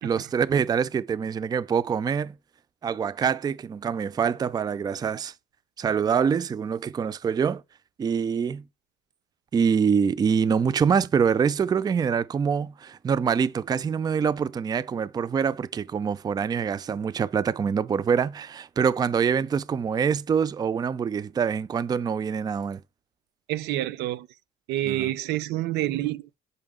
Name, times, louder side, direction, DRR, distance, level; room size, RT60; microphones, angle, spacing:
voice 1, 0.0-2.4 2.8-5.3 5.8-7.6 8.0-8.6 9.5-22.8 24.9-25.1, right 6 dB, 25° right, 0.3 m, -25 dB
voice 2, 23.5-24.3 24.7-26.4, right 14 dB, 85° right, 0.6 m, -28 dB
6.8 x 5.4 x 3.6 m
cardioid pair, 110°, 17 cm